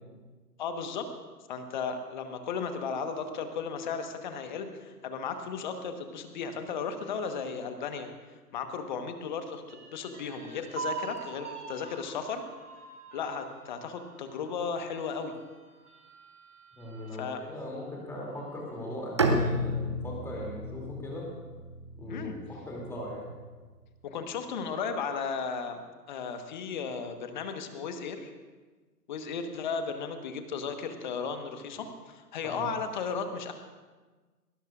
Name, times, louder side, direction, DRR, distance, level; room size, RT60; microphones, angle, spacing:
voice 1, 0.6-1.1 1.5-8.1 8.5-12.4 13.1-15.3 17.2-17.4 22.1-22.3 24.0-25.8 26.1-28.3 29.1-33.5, left 5 dB, 30° left, 7 dB, 1.3 m, -35 dB
sound 1, 9.7-17.3 17.8-17.9 18.3-19.0, right 4 dB, 65° right, 3.3 m, -44 dB
voice 2, 16.8-21.2 22.0-23.4 32.4-32.7, left 1 dB, 5° left, -3 dB, 2.8 m, -39 dB
Bowed string instrument, 19.2-23.1, right 1 dB, 20° right, 0.6 m, -32 dB
22.5 x 19.0 x 2.5 m, 1.3 s
figure-of-eight pair, 130°, 48 cm